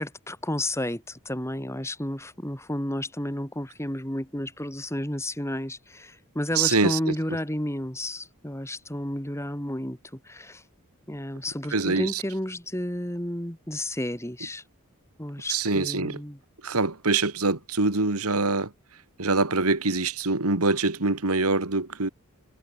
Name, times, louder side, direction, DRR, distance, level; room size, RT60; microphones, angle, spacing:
voice 1, 0.0-10.6 11.1-14.6 15.2-16.4, left 1 dB, 10° left, 3.4 m, -32 dB
voice 2, 6.6-7.1 11.7-12.2 15.5-16.2 16.6-18.7 19.2-22.1, right 3 dB, 80° right, 2.3 m, -24 dB
head